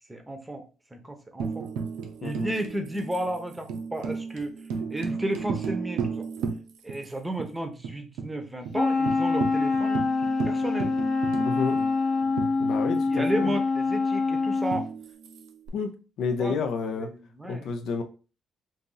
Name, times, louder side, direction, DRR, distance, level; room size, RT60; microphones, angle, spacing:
voice 1, 0.1-0.6 0.9-1.7 2.2-4.6 4.9-6.3 6.8-10.0 10.4-11.0 13.1-14.9 16.4-16.6 17.0-17.7, right 1 dB, 10° right, 0.7 m, -33 dB
Tambourine, 1.4-7.1 7.4-7.5 7.8-8.3 8.6-8.8 9.1-13.2 14.7-15.7, right 5 dB, 90° right, 0.5 m, -34 dB
voice 2, 2.2-2.5 11.4-11.8 12.6-13.5 15.7-17.1 17.5-18.0, left 5 dB, 80° left, 0.5 m, -30 dB
Wind instrument woodwind instrument, 8.7-14.9, left 4 dB, 45° left, 0.8 m, -25 dB
2.7 x 2.6 x 3.8 m
cardioid pair, 90°, 0 cm